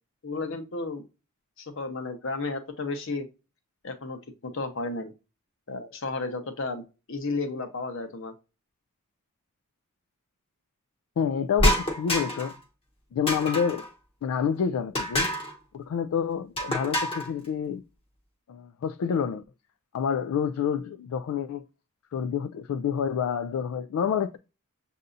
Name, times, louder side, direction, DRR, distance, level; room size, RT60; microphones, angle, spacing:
voice 1, 0.2-1.0 1.6-3.3 3.8-5.1 5.7-6.8 7.1-8.3, left 3 dB, 60° left, 0.9 m, -33 dB
voice 2, 11.2-12.5 13.1-13.9 14.2-15.3 15.7-17.8 18.5-19.4 19.9-21.6 22.1-24.4, left 7 dB, 80° left, 0.3 m, -28 dB
Empty Can Drop, 11.6-12.6 13.3-13.9 14.9-15.5 16.6-17.3, equal, 25° left, 0.8 m, -26 dB
6.6 x 2.7 x 2.5 m
head